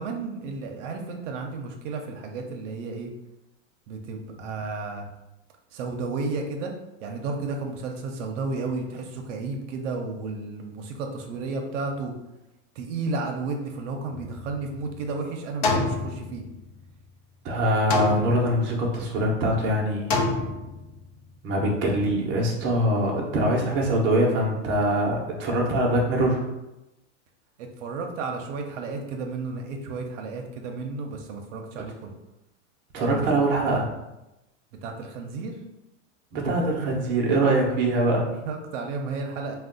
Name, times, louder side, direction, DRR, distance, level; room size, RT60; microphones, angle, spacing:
voice 1, 0.0-3.1 3.9-5.1 5.7-6.7 7.0-12.1 12.8-16.4 27.6-32.1 33.0-33.3 34.8-35.5 38.1-39.6, right 3 dB, 80° right, 3 dB, 0.6 m, -32 dB
sound 1, 14.1-15.0 15.6-16.9 17.9-18.9 20.1-21.1, left 3 dB, 60° left, 0.6 m, -28 dB
voice 2, 17.4-20.2 21.4-26.4 32.9-33.9 36.3-38.2, right 1 dB, 30° right, -2 dB, 0.6 m, -23 dB
2.5 x 2.2 x 3.7 m, 0.95 s
supercardioid pair, 150°, 36 cm